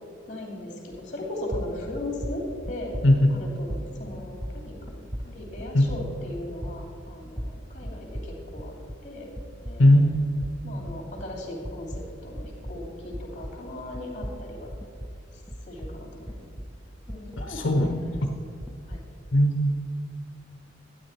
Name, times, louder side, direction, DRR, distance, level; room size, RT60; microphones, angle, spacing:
voice 1, 0.3-3.0 3.3-8.8 9.0-9.3 9.6-9.9 10.6-14.7 15.7-16.4 17.1-18.2 18.9-19.0, left 1 dB, 40° left, -1 dB, 2.8 m, -38 dB
sound 1, 0.9-1.2 1.5-9.1 9.4-13.7 13.9-16.8 17.1-19.1, equal, 5° right, 0.6 m, -37 dB
voice 2, 9.8-10.3 17.4-18.0 19.3-19.7, left 1 dB, 80° left, 3 dB, 0.8 m, -19 dB
12.0 x 9.7 x 4.5 m, 2.5 s
head